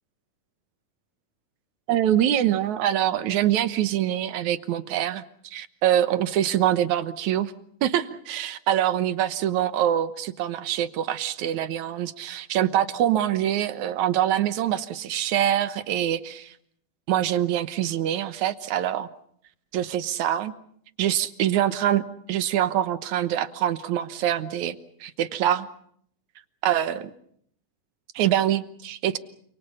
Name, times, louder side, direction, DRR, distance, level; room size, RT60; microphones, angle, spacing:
voice 1, 1.9-7.5 7.8-16.5 17.1-19.1 19.7-20.5 21.0-24.8 25.0-25.7 26.6-27.1 28.2-29.2, right 11 dB, 65° right, 12 dB, 2.2 m, -24 dB
29.0 x 27.0 x 5.6 m, 0.67 s
omnidirectional pair, 4.1 m